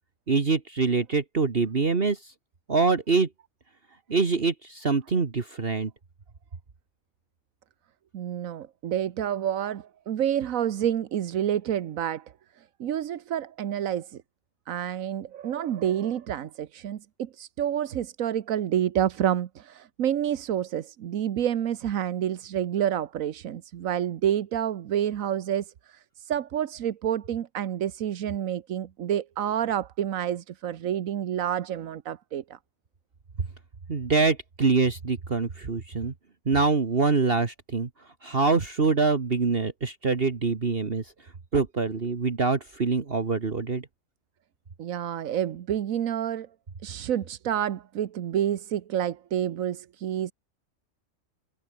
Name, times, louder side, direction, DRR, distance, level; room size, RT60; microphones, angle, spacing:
voice 1, 0.3-2.3 2.7-3.3 4.1-5.9 33.9-36.1 36.5-37.9 38.2-41.1 41.5-43.9, right 4 dB, 45° right, 1.9 m, -25 dB
voice 2, 8.1-12.2 12.8-14.2 14.7-32.4 44.8-46.5 46.8-50.3, right 10 dB, 90° right, 1.3 m, -28 dB
omnidirectional pair, 1.4 m